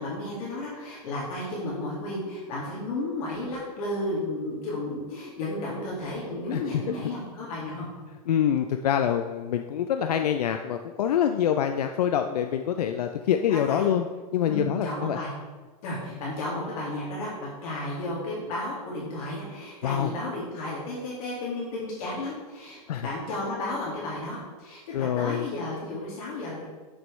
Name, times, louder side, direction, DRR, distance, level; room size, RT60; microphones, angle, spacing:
voice 1, 0.0-7.9 13.5-13.8 14.4-15.3 15.8-26.7, left 2 dB, 70° left, -5 dB, 2.0 m, -33 dB
voice 2, 8.3-14.0 14.3-15.2 19.8-20.1 22.9-23.1 24.9-25.5, left 9 dB, 90° left, 6 dB, 0.4 m, -25 dB
7.1 x 6.1 x 3.2 m, 1.4 s
hypercardioid pair, 115°, 20 cm